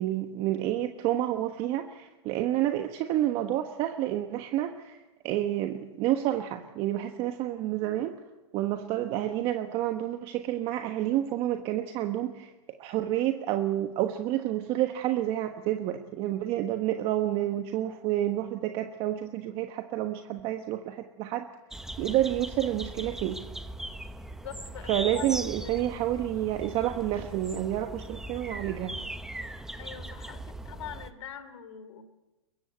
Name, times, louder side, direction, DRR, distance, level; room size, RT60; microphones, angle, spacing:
voice 1, 0.0-8.1 8.5-12.5 12.8-21.5 22.0-23.4 24.9-29.0, right 13 dB, 35° right, 6 dB, 1.3 m, -29 dB
sound 1, 21.7-31.1, right 1 dB, 5° right, 0.9 m, -39 dB
voice 2, 24.4-25.8 29.8-32.0, left 9 dB, 80° left, 12 dB, 3.1 m, -43 dB
22.5 x 21.5 x 8.2 m, 1.1 s
hypercardioid pair, 140°, 15 cm